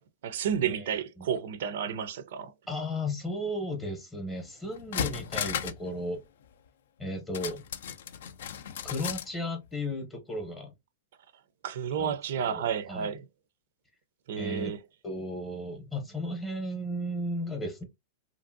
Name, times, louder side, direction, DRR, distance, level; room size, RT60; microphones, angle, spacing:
voice 1, 0.2-2.5 11.6-13.3 14.3-14.8, right 8 dB, 70° right, 0.4 m, -31 dB
voice 2, 2.7-6.2 7.0-7.6 8.8-10.7 12.0-12.1 12.5-13.1 14.4-14.7 15.0-17.8, left 1 dB, 10° left, 0.7 m, -34 dB
sound 1, 4.3-4.4 4.7-5.9 6.1-6.2 7.3-9.3 9.6-9.7, left 9 dB, 75° left, 0.3 m, -35 dB
2.8 x 2.5 x 2.5 m
supercardioid pair, 145°, 0 cm